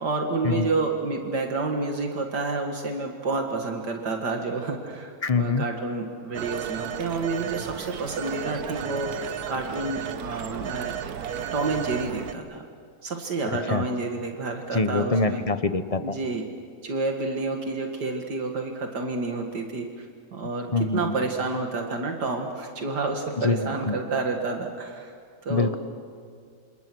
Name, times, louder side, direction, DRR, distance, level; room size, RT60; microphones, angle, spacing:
voice 1, 0.0-11.0 11.5-12.6 13.0-15.4 16.0-16.4 16.8-25.1 25.4-25.7, right 3 dB, 85° right, 2 dB, 2.5 m, -29 dB
voice 2, 5.2-5.6 13.7-13.9 14.7-16.2 20.7-21.2 23.4-23.6 23.9-24.0 25.5-25.8, left 3 dB, 25° left, 10 dB, 0.9 m, -24 dB
Telephone, 6.3-12.3, right 9 dB, 70° right, 1.4 m, -34 dB
29.5 x 27.0 x 6.3 m, 2.2 s
omnidirectional pair, 1.7 m